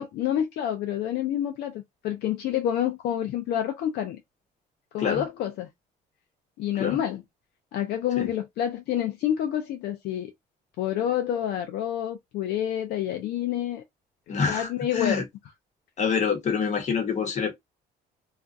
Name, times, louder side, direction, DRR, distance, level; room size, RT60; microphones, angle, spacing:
voice 1, 0.0-4.2 4.9-5.7 6.6-7.2 7.7-10.3 10.8-13.8 14.5-15.2, left 10 dB, 75° left, 0.5 m, -28 dB
voice 2, 14.3-15.2 16.0-17.5, left 6 dB, 45° left, 1.0 m, -26 dB
2.4 x 2.2 x 2.5 m
cardioid pair, 110°, 17 cm